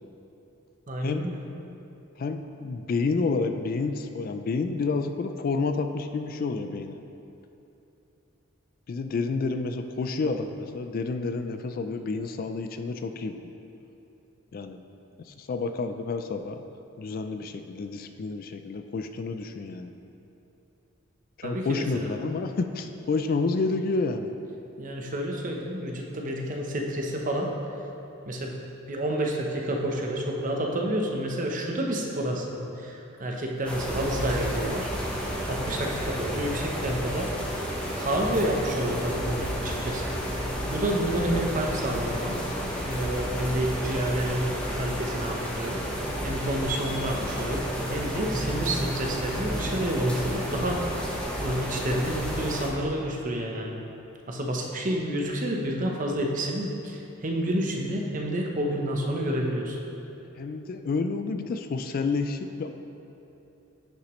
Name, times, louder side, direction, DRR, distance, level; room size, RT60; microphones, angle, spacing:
voice 1, 0.9-1.4 21.4-22.1 24.8-27.5 28.3-28.6 28.9-34.9 35.5-37.3 38.0-40.1 40.6-42.4 42.6-50.9 51.4-53.8 54.3-59.8, right 1 dB, 40° right, 1 dB, 0.8 m, -29 dB
voice 2, 2.2-7.0 8.9-13.5 14.5-14.8 15.2-16.6 17.0-19.9 21.4-24.4 60.4-62.7, left 4 dB, 45° left, 7 dB, 0.3 m, -29 dB
sound 1, 33.6-52.7, equal, 5° left, 0.9 m, -31 dB
9.8 x 6.0 x 3.1 m, 2.9 s
head